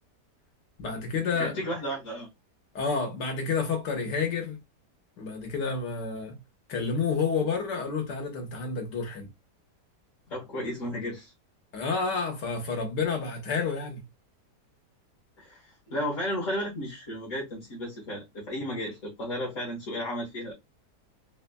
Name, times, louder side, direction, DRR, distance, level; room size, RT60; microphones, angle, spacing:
voice 1, 0.8-1.6 2.8-4.6 5.2-6.4 6.7-9.3 11.7-14.0, left 5 dB, 85° left, 1.8 m, -29 dB
voice 2, 1.4-2.3 10.3-11.3 15.4-20.5, equal, 50° left, 1.7 m, -33 dB
4.1 x 3.0 x 2.3 m
omnidirectional pair, 1.8 m